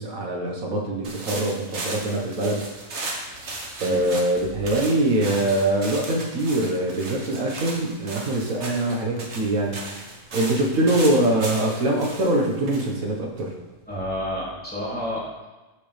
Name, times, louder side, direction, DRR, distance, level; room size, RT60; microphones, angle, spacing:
voice 1, 0.0-2.6 3.8-9.8 10.3-13.5, right 1 dB, 85° right, 0 dB, 1.9 m, -23 dB
sound 1, 1.0-13.8, right 2 dB, 55° right, 1.7 m, -36 dB
voice 2, 13.9-15.5, equal, 5° left, -8 dB, 3.4 m, -30 dB
13.0 x 6.9 x 3.5 m, 1.1 s
omnidirectional pair, 1.4 m